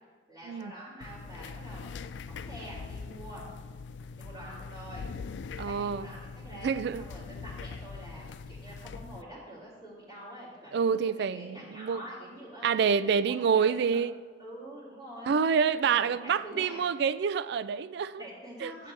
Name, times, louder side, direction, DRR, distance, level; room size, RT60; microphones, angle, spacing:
voice 1, 0.3-1.9 2.3-3.4 4.2-5.0 5.6-12.7 13.0-14.0 14.4-15.3 15.8-16.9 18.2-18.9, equal, 25° right, 2.6 m, -46 dB
Office chair rolling, 1.0-9.2, left 5 dB, 70° left, 0.3 m, -42 dB
voice 2, 5.6-6.1 6.6-7.0 10.7-12.0 12.6-14.1 15.3-18.2 18.6-18.7, right 6 dB, 65° right, 0.3 m, -27 dB
11.0 x 7.7 x 3.3 m
head